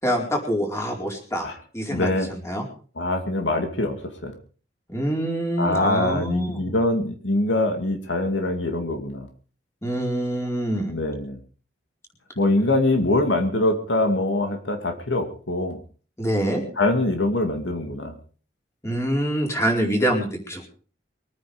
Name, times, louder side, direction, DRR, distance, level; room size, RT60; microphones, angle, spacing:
voice 1, 0.0-1.5 1.7-2.7 4.9-6.6 9.8-11.0 16.2-16.6 18.8-20.7, equal, 15° left, 1 dB, 4.5 m, -25 dB
voice 2, 1.9-2.3 3.0-3.9 4.2-4.3 5.6-9.3 10.9-11.4 12.4-15.8 16.8-18.1, left 2 dB, 80° left, 5 dB, 2.5 m, -23 dB
23.0 x 9.6 x 5.2 m, 0.40 s
head